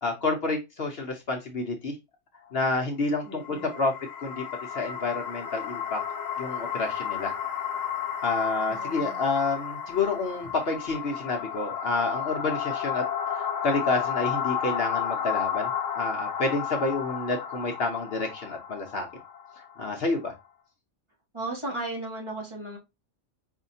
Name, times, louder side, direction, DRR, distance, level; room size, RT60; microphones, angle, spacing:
voice 1, 0.0-1.9 2.5-3.9 4.2-4.4 4.7-6.0 6.4-7.3 8.2-13.0 13.3-19.1 19.8-20.3, left 3 dB, 55° left, 3 dB, 0.9 m, -29 dB
sound 1, 3.3-20.4, left 8 dB, 85° left, 1.2 m, -32 dB
voice 2, 3.3-3.8 8.7-9.2 21.3-22.8, right 2 dB, 25° right, -2 dB, 1.3 m, -36 dB
5.0 x 2.7 x 2.6 m, 0.23 s
omnidirectional pair, 1.3 m